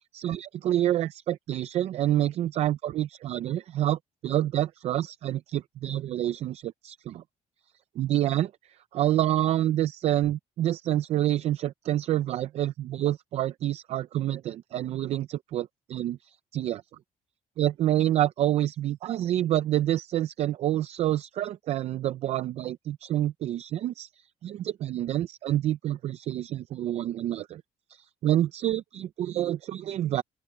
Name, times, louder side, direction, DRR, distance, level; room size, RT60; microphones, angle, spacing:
voice 1, 0.1-7.2 8.0-8.5 8.9-16.8 17.6-27.6 27.9-30.2, right 13 dB, 50° right, 0.5 m, -28 dB
open air
cardioid pair, 180°, 14 cm